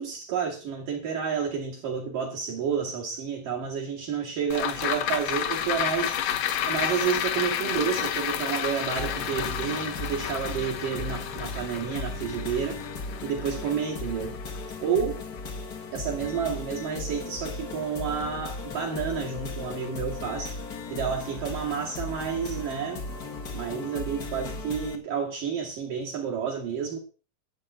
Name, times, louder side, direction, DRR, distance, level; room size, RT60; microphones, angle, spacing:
voice 1, 0.0-6.2 6.7-12.8 13.2-14.4 14.8-15.2 15.9-20.6 20.9-23.1 23.5-27.0, right 7 dB, 55° right, -2 dB, 3.8 m, -30 dB
sound 1, 4.5-15.0 15.4-15.5, left 10 dB, 85° left, 1.5 m, -31 dB
sound 2, 9.0-25.0, left 3 dB, 60° left, 0.9 m, -37 dB
13.5 x 5.4 x 8.9 m, 0.36 s
omnidirectional pair, 4.6 m